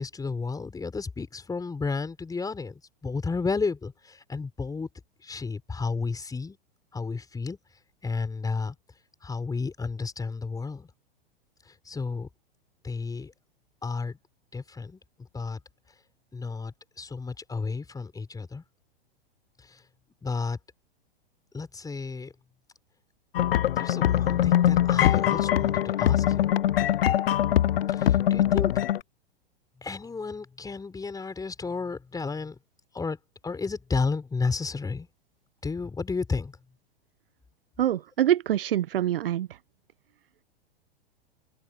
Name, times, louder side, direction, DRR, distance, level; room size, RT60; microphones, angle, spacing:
voice 1, 0.0-4.9 5.2-6.6 6.9-7.6 8.0-8.7 9.2-10.9 11.7-12.3 12.8-13.3 13.8-14.2 14.5-15.0 15.3-15.6 16.3-18.6 19.6-19.8 20.2-20.6 21.5-22.3 23.8-26.6 27.9-28.7 29.8-32.6 32.9-33.2 33.4-35.1 35.6-36.6, left 4 dB, 10° left, 4.8 m, -32 dB
sound 1, 23.3-29.0, left 11 dB, 75° left, 0.6 m, -22 dB
voice 2, 37.8-39.5, right 11 dB, 70° right, 1.0 m, -25 dB
open air
hypercardioid pair, 100°, 30 cm